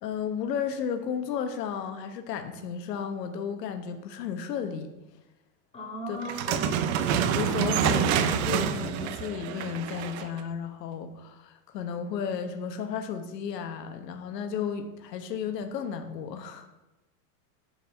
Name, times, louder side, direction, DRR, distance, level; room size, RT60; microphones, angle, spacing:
voice 1, 0.0-4.9 6.1-6.2 6.5-6.6 7.3-16.7, left 7 dB, 90° left, 7 dB, 1.2 m, -33 dB
voice 2, 5.7-7.0, right 1 dB, 15° left, -2 dB, 2.0 m, -37 dB
sound 1, 6.2-10.4, right 8 dB, 45° right, 0.6 m, -27 dB
9.2 x 4.8 x 6.8 m, 1.0 s
supercardioid pair, 160°, 47 cm